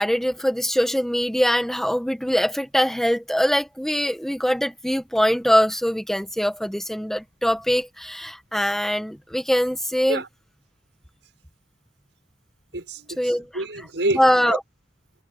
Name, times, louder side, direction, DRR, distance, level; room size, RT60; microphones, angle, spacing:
voice 1, 0.0-10.2 13.2-13.4 14.1-14.6, equal, ahead, 1.4 m, -22 dB
voice 2, 12.7-14.6, right 2 dB, 90° right, 6.0 m, -28 dB
head